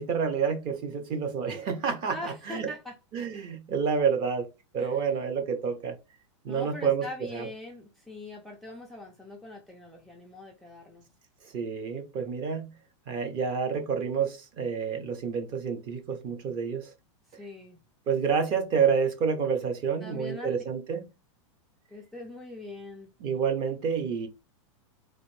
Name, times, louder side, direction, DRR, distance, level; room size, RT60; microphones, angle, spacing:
voice 1, 0.0-2.7 3.1-6.0 6.4-7.1 7.3-7.5 11.5-12.7 13.1-16.9 18.1-21.1 23.2-24.3, right 6 dB, 30° right, 0.8 m, -29 dB
voice 2, 2.1-3.0 4.8-5.1 6.5-11.0 17.3-17.8 20.0-20.5 21.9-23.1, left 2 dB, ahead, 0.4 m, -42 dB
4.0 x 2.6 x 3.2 m
supercardioid pair, 160°, 16 cm